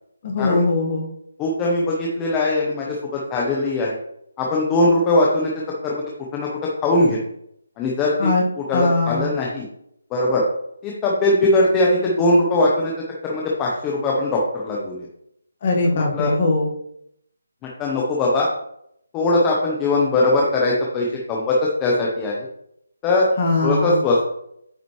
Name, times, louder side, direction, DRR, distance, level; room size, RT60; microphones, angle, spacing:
voice 1, 0.2-1.1 8.2-8.4 8.7-9.3 15.6-16.7 23.4-24.0, left 2 dB, 25° left, -1 dB, 1.5 m, -20 dB
voice 2, 1.4-4.0 4.4-5.5 5.8-6.0 6.3-6.5 6.8-7.2 7.8-8.3 8.6-9.7 10.1-10.4 10.8-12.9 13.2-15.1 15.9-16.3 17.8-18.5 19.1-22.5 23.0-23.3 23.6-24.3, left 2 dB, 10° left, -3 dB, 0.7 m, -20 dB
8.8 x 5.7 x 3.1 m, 0.74 s
hypercardioid pair, 175°, 0 cm